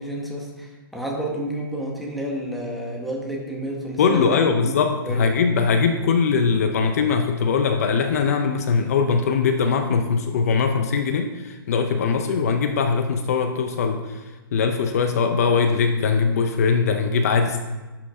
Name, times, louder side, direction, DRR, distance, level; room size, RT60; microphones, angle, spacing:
voice 1, 0.0-4.8 5.0-5.3, right 1 dB, ahead, -2 dB, 0.7 m, -30 dB
voice 2, 4.0-14.2 14.5-17.6, left 5 dB, 40° left, 7 dB, 0.5 m, -21 dB
11.5 x 5.7 x 2.7 m, 1.2 s
hypercardioid pair, 165°, 12 cm